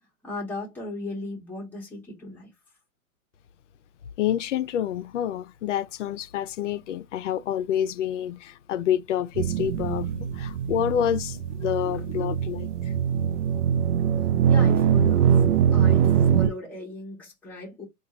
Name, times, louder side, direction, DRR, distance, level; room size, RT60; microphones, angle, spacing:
voice 1, 0.2-2.5 14.5-15.4 15.7-17.8, left 2 dB, 5° left, 0.8 m, -37 dB
voice 2, 4.2-12.7, left 10 dB, 55° left, 0.5 m, -28 dB
sound 1, 9.4-16.5, right 8 dB, 90° right, 0.6 m, -22 dB
4.2 x 2.4 x 2.8 m
hypercardioid pair, 155°, 44 cm